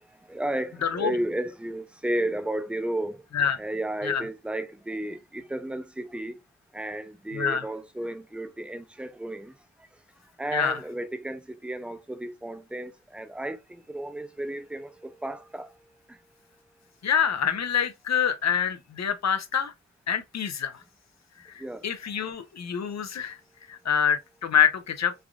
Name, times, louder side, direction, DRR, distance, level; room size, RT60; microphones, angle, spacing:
voice 1, 0.3-3.2 3.6-6.4 6.7-9.5 10.4-15.7 16.1-16.2 21.6-21.8, right 1 dB, 5° right, 0.3 m, -33 dB
voice 2, 0.8-1.1 3.3-3.6 4.0-4.2 7.3-7.6 10.5-10.8 17.0-19.7 20.1-20.8 21.4-23.4 23.7-25.1, left 8 dB, 65° left, 0.5 m, -26 dB
3.3 x 2.4 x 2.3 m
wide cardioid pair, 75°, 29 cm